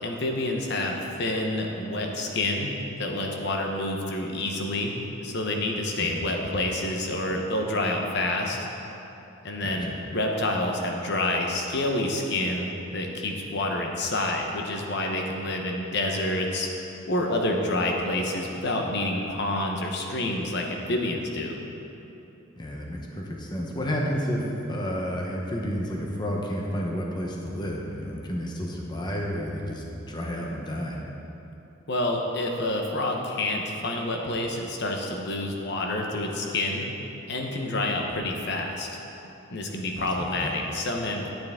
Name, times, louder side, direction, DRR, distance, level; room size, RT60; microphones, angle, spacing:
voice 1, 0.0-2.7 3.0-4.9 5.2-8.6 9.4-16.7 17.1-21.6 31.9-36.9 37.3-38.9 39.5-41.3, left 1 dB, 55° left, 1 dB, 0.9 m, -28 dB
voice 2, 22.6-31.0 40.0-40.5, equal, 20° left, -1 dB, 0.8 m, -31 dB
10.5 x 9.0 x 3.6 m, 3.0 s
head